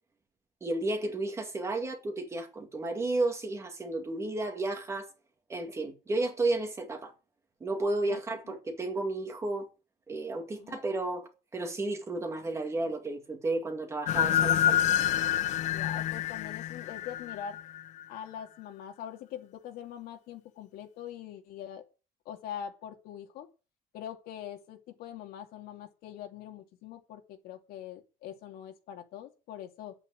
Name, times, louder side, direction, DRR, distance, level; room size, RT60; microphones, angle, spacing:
voice 1, 0.6-5.1 5.5-7.1 7.6-9.7 10.1-14.8, right 2 dB, 15° right, 2.1 m, -32 dB
voice 2, 8.1-8.6 10.6-10.8 15.7-17.6 18.1-21.8 22.3-23.5 23.9-29.9, left 9 dB, 65° left, 2.5 m, -43 dB
sound 1, 14.1-18.0, left 11 dB, 45° left, 0.6 m, -28 dB
9.8 x 8.6 x 7.8 m
cardioid pair, 170°, 16 cm